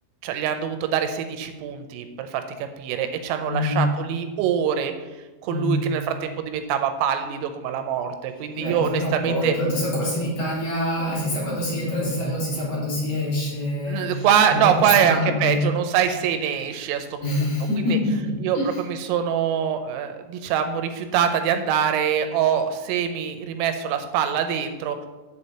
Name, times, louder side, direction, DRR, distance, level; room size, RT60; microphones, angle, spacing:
voice 1, 0.2-4.9 5.4-9.6 13.9-17.5 17.8-18.0 18.4-25.1, right 8 dB, 85° right, 7 dB, 3.3 m, -24 dB
voice 2, 3.4-3.9 5.5-5.9 8.6-15.7 17.2-18.8, left 1 dB, 40° left, -7 dB, 3.8 m, -25 dB
8.1 x 7.2 x 4.2 m, 1.2 s
omnidirectional pair, 5.9 m